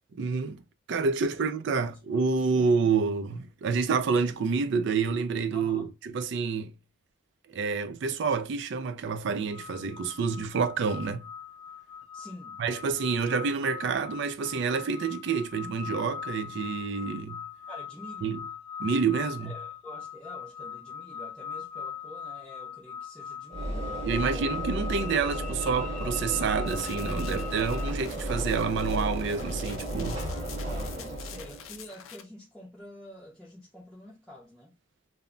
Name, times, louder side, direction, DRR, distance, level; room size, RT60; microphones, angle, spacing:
voice 1, 0.1-0.6 0.9-6.7 7.5-11.3 12.6-17.4 18.2-18.5 18.8-19.5 24.0-30.2, right 5 dB, 55° right, 0.3 m, -28 dB
voice 2, 5.5-5.9 12.1-12.6 17.7-18.3 19.4-24.6 30.1-34.7, left 1 dB, ahead, 0.6 m, -48 dB
sound 1, 9.5-27.9, left 7 dB, 30° left, 0.8 m, -41 dB
Train / Engine / Alarm, 23.5-31.8, right 1 dB, 30° right, 1.0 m, -33 dB
sound 2, 26.7-32.2, left 8 dB, 75° left, 0.4 m, -47 dB
2.1 x 2.1 x 3.7 m
head